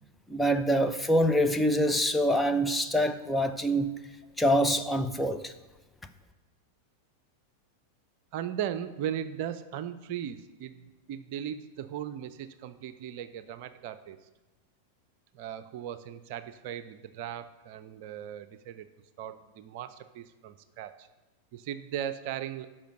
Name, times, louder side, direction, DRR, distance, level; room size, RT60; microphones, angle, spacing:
voice 1, 0.3-3.9 4.4-5.5, equal, 5° left, 6 dB, 0.6 m, -25 dB
voice 2, 8.3-14.2 15.3-18.9 19.2-21.1 21.5-22.7, right 10 dB, 45° right, 11 dB, 0.5 m, -37 dB
10.0 x 5.6 x 6.7 m, 1.2 s
figure-of-eight pair, 90°, 0 cm